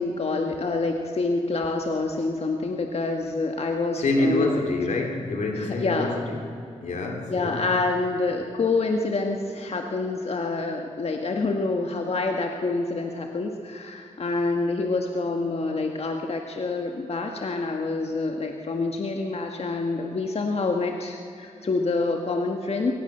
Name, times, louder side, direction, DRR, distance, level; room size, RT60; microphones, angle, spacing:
voice 1, 0.0-4.6 5.6-6.2 7.3-22.9, left 3 dB, 60° left, 3 dB, 1.7 m, -27 dB
voice 2, 4.0-6.4 6.8-7.7, left 2 dB, 90° left, 3 dB, 3.1 m, -26 dB
22.5 x 19.0 x 6.8 m, 2.6 s
cardioid pair, 65°, 12 cm